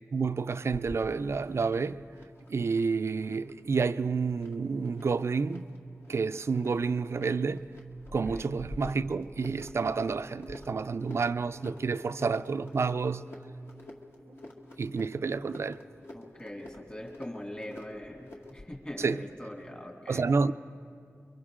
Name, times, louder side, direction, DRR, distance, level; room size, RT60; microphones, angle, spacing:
voice 1, 0.1-2.0 2.5-5.7 6.1-7.7 8.1-13.3 14.8-15.8 19.0-19.2 20.1-20.5, right 4 dB, 55° right, 0.4 m, -29 dB
sound 1, 0.7-18.7, left 1 dB, 50° left, 2.1 m, -48 dB
voice 2, 16.1-20.3, left 1 dB, 25° left, 2.6 m, -42 dB
29.0 x 23.5 x 3.8 m
wide cardioid pair, 115°, 5 cm